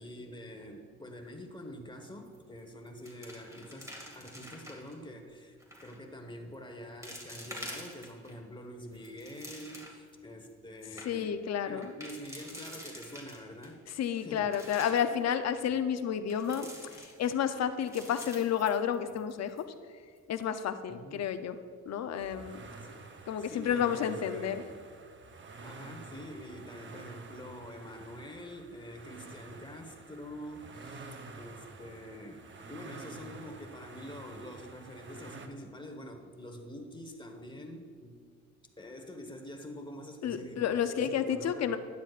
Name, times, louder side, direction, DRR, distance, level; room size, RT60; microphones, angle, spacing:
voice 1, 0.0-11.4 11.7-13.8 14.2-14.5 20.9-21.2 22.8-23.0 23.4-24.8 25.6-38.2 38.8-41.8, equal, 15° left, 4 dB, 1.3 m, -46 dB
sound 1, 2.3-2.6 2.9-4.9 5.6-6.0 6.5-6.6 7.0-8.3 8.8-10.1 10.5-10.6 10.8-11.1 11.8-13.7 14.2-15.1 16.3-17.4 17.8-19.3 19.6-19.7 20.2-20.4, equal, 10° right, 2.2 m, -47 dB
voice 2, 11.1-11.9 14.0-19.6 20.3-21.6 21.9-22.6 23.3-24.6 40.2-41.8, left 8 dB, 60° left, 9 dB, 0.7 m, -31 dB
sound 2, 22.1-35.5, right 3 dB, 40° right, 0.9 m, -49 dB
12.5 x 9.6 x 2.5 m, 2.1 s
cardioid pair, 90°, 30 cm